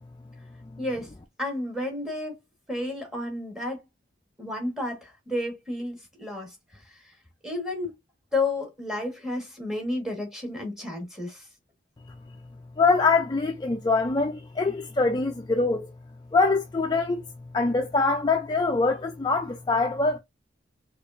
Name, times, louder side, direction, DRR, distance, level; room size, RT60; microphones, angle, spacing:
voice 1, 0.8-1.1 1.4-2.4 2.7-3.8 4.4-7.1 7.4-7.9 8.3-11.4, left 2 dB, ahead, 1.4 m, -31 dB
voice 2, 12.8-15.9 16.3-17.2 17.5-20.2, left 3 dB, 20° left, 0.3 m, -24 dB
4.7 x 2.5 x 2.5 m
head